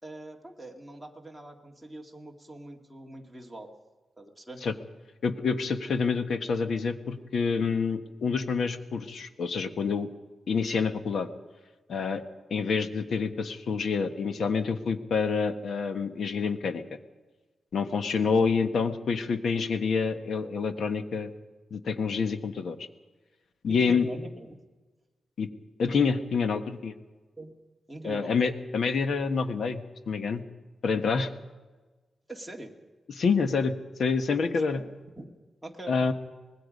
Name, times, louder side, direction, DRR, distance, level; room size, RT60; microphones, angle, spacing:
voice 1, 0.0-3.8 4.2-4.7 18.1-18.3 23.7-24.5 27.4-27.5 27.9-28.3 32.3-32.8 34.5-34.9 35.2-35.3 35.6-36.1, right 1 dB, ahead, 0 dB, 2.0 m, -43 dB
voice 2, 5.2-10.1 10.5-11.3 11.9-12.2 12.5-16.8 17.7-21.3 21.7-22.9 23.6-24.1 25.4-25.5 25.8-26.9 28.0-30.4 30.8-31.3 33.1-34.8 35.9-36.1, left 5 dB, 60° left, 8 dB, 1.3 m, -27 dB
24.5 x 20.0 x 5.3 m, 1.3 s
wide cardioid pair, 165°, 0 cm